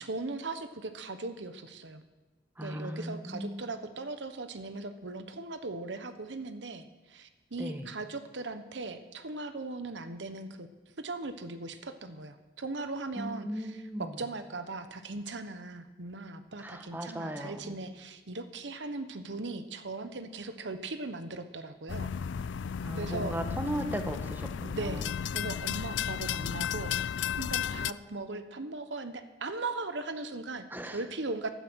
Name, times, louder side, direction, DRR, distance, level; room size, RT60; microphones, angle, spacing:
voice 1, 0.0-2.0 2.6-10.7 11.0-22.1 23.0-23.4 24.7-27.0 27.4-31.5, right 3 dB, 80° right, 10 dB, 1.1 m, -39 dB
voice 2, 2.6-3.7 7.6-7.9 13.2-14.2 16.6-17.8 22.8-25.0 30.7-31.0, right 1 dB, 10° right, 6 dB, 1.3 m, -37 dB
sound 1, 21.9-27.9, left 8 dB, 85° left, 0.4 m, -34 dB
15.5 x 12.5 x 6.3 m, 1.2 s
head